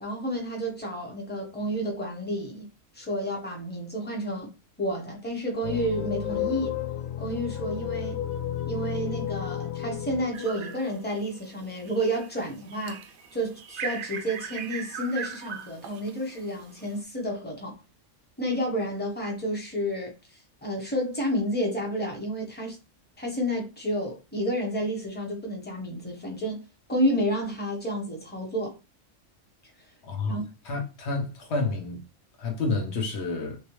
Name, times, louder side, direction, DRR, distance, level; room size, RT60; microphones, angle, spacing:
voice 1, 0.0-2.7 2.9-4.5 4.8-6.8 7.2-8.2 8.7-17.8 18.4-20.1 20.6-22.8 23.2-26.6 26.9-28.8 30.3-30.5, equal, 10° left, 0.8 m, -30 dB
sound 1, 5.6-11.8, left 11 dB, 80° left, 1.0 m, -33 dB
sound 2, 10.3-11.4 11.8-17.0, right 6 dB, 65° right, 0.5 m, -39 dB
voice 2, 30.0-30.4 30.6-32.0 32.4-33.6, left 3 dB, 60° left, 1.1 m, -29 dB
3.1 x 2.9 x 3.1 m
omnidirectional pair, 1.4 m